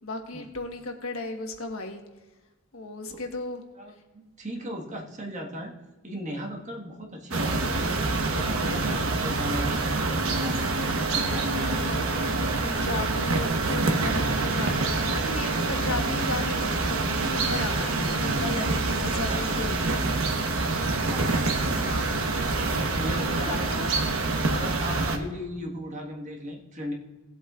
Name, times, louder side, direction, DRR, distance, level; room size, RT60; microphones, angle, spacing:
voice 1, 0.0-2.0 2.7-3.6 11.8-12.0 12.6-20.1 21.7-22.2 23.2-23.9, left 2 dB, 90° left, 4 dB, 1.4 m, -35 dB
voice 2, 3.8-5.7 6.0-8.0 8.3-10.7 11.1-11.9 19.3-19.4 21.0-21.9 23.0-23.7 24.5-26.9, equal, 35° right, 0 dB, 1.6 m, -37 dB
sound 1, 7.3-25.2, right 3 dB, 85° right, 1.1 m, -26 dB
18.5 x 8.0 x 2.5 m, 1.2 s
head